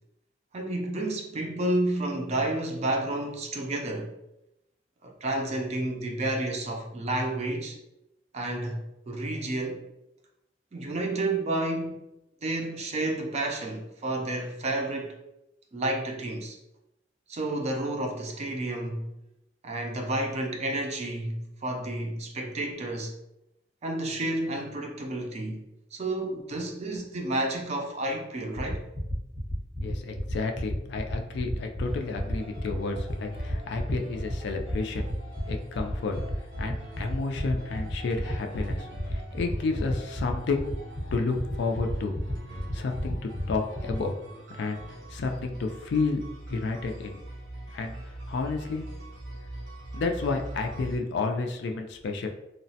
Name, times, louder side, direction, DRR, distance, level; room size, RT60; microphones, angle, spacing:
voice 1, 0.5-4.2 5.0-7.8 8.3-9.9 10.7-12.0 12.4-15.2 15.7-16.6 17.3-19.1 19.6-23.1 23.8-25.6 25.9-28.8, right 1 dB, 35° right, 0.4 m, -30 dB
sound 1, 28.5-43.9, left 1 dB, 5° left, 0.8 m, -35 dB
voice 2, 29.8-35.1 35.5-36.2 36.6-40.6 41.1-42.1 42.7-43.2 43.5-44.1 44.5-44.8 45.1-46.2 46.5-47.2 47.7-47.9 48.3-48.9 49.9-52.3, left 3 dB, 65° left, 0.3 m, -31 dB
sound 2, 31.8-51.0, equal, 85° right, 0.7 m, -43 dB
2.9 x 2.1 x 2.7 m
head